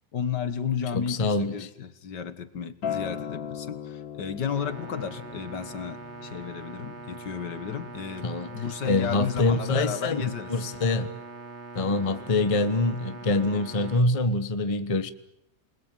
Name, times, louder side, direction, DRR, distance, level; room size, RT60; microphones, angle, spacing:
voice 1, 0.1-10.7 12.1-12.2, left 7 dB, 65° left, 2.1 m, -33 dB
voice 2, 0.9-1.6 8.2-8.5 8.8-10.2 10.5-11.1 11.7-15.1, left 2 dB, 20° left, 1.0 m, -25 dB
Acoustic guitar, 2.8-8.0, left 8 dB, 85° left, 2.1 m, -38 dB
sound 1, 4.5-14.0, right 4 dB, 40° right, 1.8 m, -42 dB
28.5 x 21.0 x 9.3 m
omnidirectional pair, 2.0 m